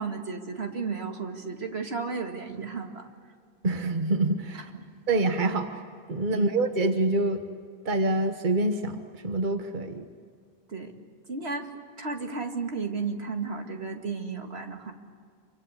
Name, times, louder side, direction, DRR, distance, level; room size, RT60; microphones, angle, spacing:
voice 1, 0.0-3.1 6.3-6.5 10.7-10.9 11.3-11.7 12.0-14.9, right 4 dB, 80° right, 4 dB, 2.3 m, -33 dB
voice 2, 3.6-4.7 5.1-5.7 6.1-7.4 7.8-10.1, right 2 dB, 50° right, 7 dB, 1.4 m, -26 dB
28.0 x 25.0 x 8.2 m, 2.1 s
omnidirectional pair, 1.1 m